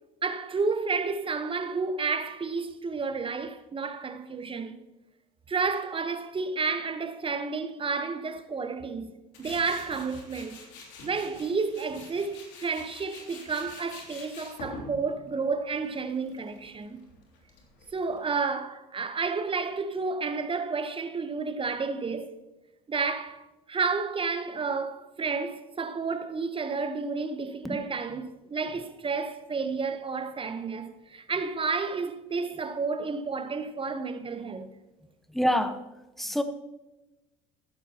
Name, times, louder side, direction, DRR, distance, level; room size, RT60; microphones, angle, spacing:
voice 1, 0.2-4.8 5.5-9.1 9.4-10.6 11.0-17.0 17.9-22.4 22.9-34.7, right 4 dB, 25° right, 1.2 m, -31 dB
Tools, 9.3-18.2, left 3 dB, 65° left, 3.1 m, -47 dB
voice 2, 35.3-35.8 36.2-36.4, equal, ahead, 1.3 m, -26 dB
14.5 x 12.0 x 3.0 m
hypercardioid pair, 65°, 20 cm